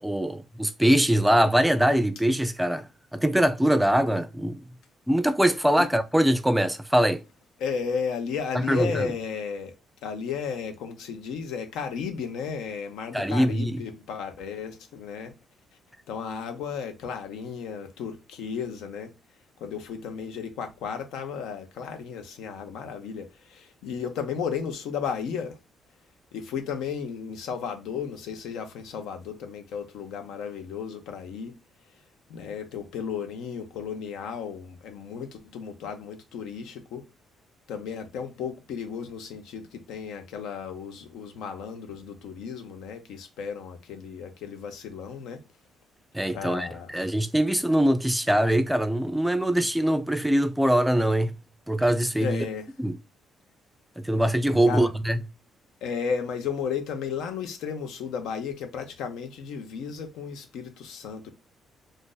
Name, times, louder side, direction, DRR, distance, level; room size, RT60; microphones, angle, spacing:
voice 1, 0.0-4.6 5.1-7.2 8.7-9.1 13.1-13.8 46.1-51.3 51.7-52.5 52.8-53.0 54.0-55.2, right 1 dB, 5° right, 0.4 m, -23 dB
voice 2, 7.6-9.7 10.0-15.3 16.1-19.1 19.6-25.6 26.3-31.5 32.3-37.0 37.7-45.4 46.3-47.0 52.2-52.7 54.7-54.9 55.8-61.3, left 6 dB, 90° left, 0.7 m, -34 dB
2.6 x 2.5 x 3.8 m
cardioid pair, 90°, 0 cm